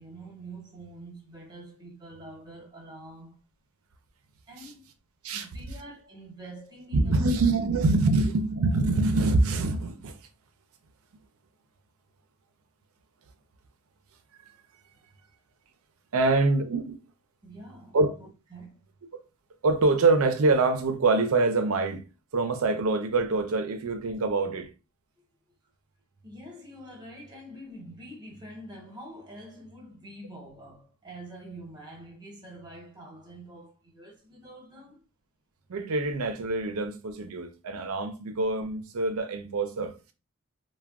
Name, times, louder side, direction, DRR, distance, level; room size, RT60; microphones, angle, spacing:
voice 1, 0.0-3.4 4.5-4.8 5.3-7.3 14.9-15.0 17.4-18.8 26.2-35.0, right 1 dB, 20° right, 0.9 m, -46 dB
voice 2, 6.9-10.2 16.1-17.0 17.9-18.1 19.6-22.0 22.3-24.7 35.7-40.1, right 3 dB, 75° right, 0.5 m, -25 dB
3.3 x 2.2 x 2.3 m
head